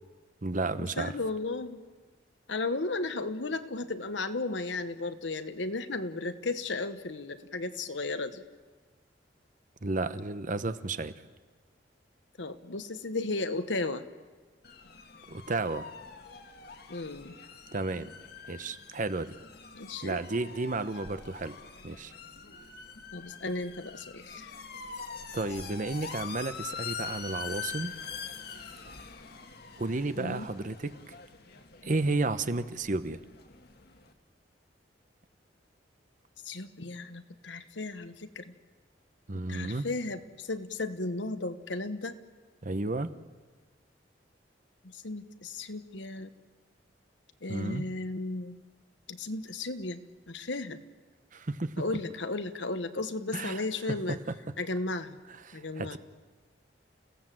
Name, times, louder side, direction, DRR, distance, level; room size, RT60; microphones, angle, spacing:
voice 1, 0.4-1.1 9.8-11.1 15.3-15.9 17.7-18.1 18.5-19.4 20.0-21.6 21.8-22.1 25.3-27.9 29.8-31.1 31.8-33.2 39.3-39.9 42.6-43.1 47.5-47.8 51.3-51.8 53.3-53.6 54.1-54.2 55.4-56.0, right 2 dB, 45° right, 12 dB, 0.9 m, -32 dB
voice 2, 1.0-1.8 2.5-8.4 12.4-14.0 16.9-17.3 19.7-20.2 23.1-24.7 30.2-30.5 36.4-38.5 39.5-42.2 44.8-46.3 47.4-48.6 49.1-50.8 51.8-54.2 54.6-55.2 55.5-56.0, left 3 dB, 80° left, 10 dB, 1.3 m, -35 dB
sound 1, 14.6-34.1, left 5 dB, 60° left, 1.7 m, -44 dB
29.5 x 16.5 x 7.6 m, 1.4 s
head